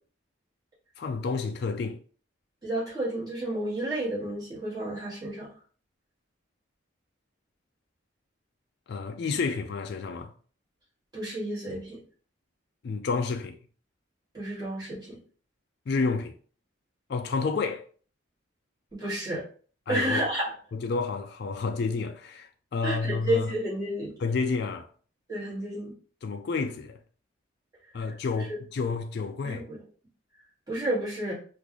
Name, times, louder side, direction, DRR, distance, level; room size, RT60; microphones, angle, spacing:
voice 1, 1.0-2.0 8.9-10.3 12.8-13.6 15.9-16.4 17.1-17.9 19.9-20.3 20.7-23.5 24.2-24.9 26.2-27.0 27.9-29.6, left 4 dB, 50° left, 0.3 m, -30 dB
voice 2, 2.6-5.5 11.1-12.0 14.3-15.2 18.9-19.4 19.9-20.5 22.8-24.1 25.3-25.9 29.4-29.8 30.7-31.3, right 1 dB, 20° right, 1.8 m, -31 dB
3.7 x 2.5 x 3.0 m
head